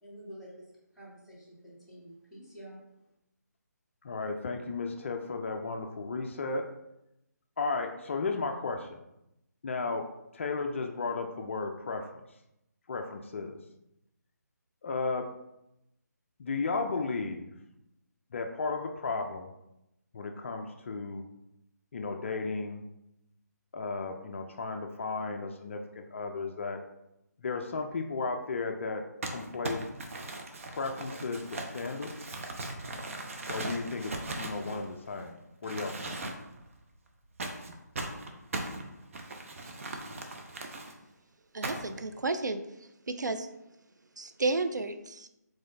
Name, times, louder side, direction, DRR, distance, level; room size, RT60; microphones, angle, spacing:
voice 1, 0.0-2.8, equal, ahead, -13 dB, 1.7 m, -49 dB
voice 2, 4.0-6.7 7.6-9.0 9.6-10.1 10.3-12.2 12.9-13.6 14.8-15.3 16.4-17.5 18.3-19.5 20.1-21.2 21.9-22.8 23.7-26.8 27.4-29.8 30.7-32.3 33.5-35.3 35.6-36.2, left 4 dB, 45° left, 4 dB, 0.4 m, -34 dB
Crumpling crinkling, 29.2-35.2 35.6-36.6 37.4-40.9 41.6-42.0, right 2 dB, 50° right, 0.7 m, -39 dB
voice 3, 41.5-43.5 44.2-45.3, right 3 dB, 85° right, 9 dB, 0.4 m, -32 dB
4.8 x 3.9 x 2.6 m, 0.86 s
figure-of-eight pair, 150°, 9 cm